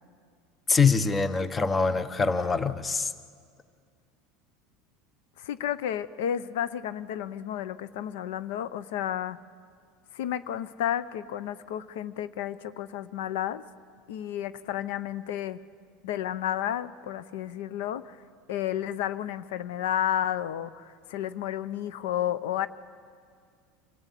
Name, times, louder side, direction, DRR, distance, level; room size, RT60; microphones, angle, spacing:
voice 1, 0.7-3.1, left 5 dB, 15° left, 13 dB, 0.8 m, -24 dB
voice 2, 5.4-9.4 10.1-13.6 14.1-15.6 16.0-18.2 18.5-22.7, left 11 dB, 80° left, 15 dB, 0.7 m, -32 dB
25.5 x 15.0 x 8.3 m, 2.1 s
supercardioid pair, 135°, 0 cm